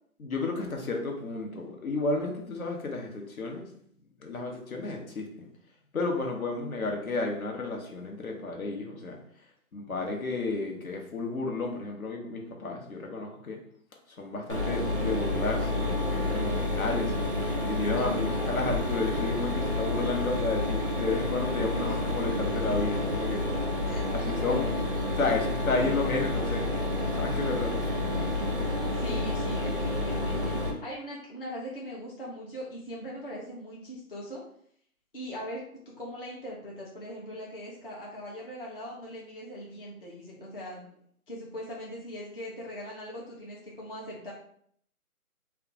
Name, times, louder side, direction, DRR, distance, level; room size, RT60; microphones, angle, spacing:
voice 1, 0.2-3.7 4.2-5.5 5.9-9.2 9.7-13.6 14.2-17.3 17.7-23.4 24.1-24.7 25.2-26.7 27.2-27.7, left 3 dB, 70° left, 1 dB, 0.9 m, -32 dB
Mechanisms, 14.5-30.7, left 1 dB, 40° right, 0.4 m, -29 dB
voice 2, 18.0-18.6 21.9-22.0 23.8-24.3 26.2-26.6 28.9-34.4 35.1-40.8 41.3-44.3, equal, 40° left, -5 dB, 0.5 m, -40 dB
2.3 x 2.3 x 3.7 m, 0.64 s
hypercardioid pair, 175°, 44 cm